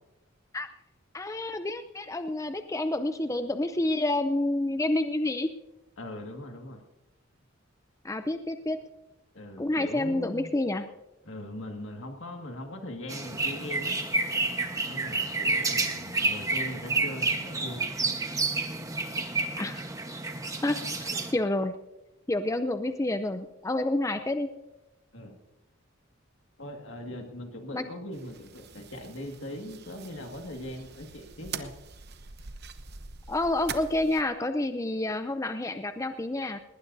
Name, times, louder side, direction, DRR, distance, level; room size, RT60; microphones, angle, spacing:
voice 1, 1.1-5.5 8.0-8.8 9.6-10.9 19.6-19.8 20.6-21.7 22.3-24.5 27.7-27.8 33.3-36.6, left 2 dB, 15° left, 9 dB, 0.5 m, -29 dB
voice 2, 6.0-6.8 9.3-10.5 11.2-14.0 14.9-17.9 25.1-25.4 26.6-31.7, left 1 dB, 70° left, 3 dB, 2.0 m, -40 dB
sound 1, 13.1-21.3, right 3 dB, 15° right, 1.2 m, -30 dB
sound 2, 28.1-34.2, right 6 dB, 50° right, 0.9 m, -44 dB
20.0 x 19.0 x 2.7 m, 0.98 s
head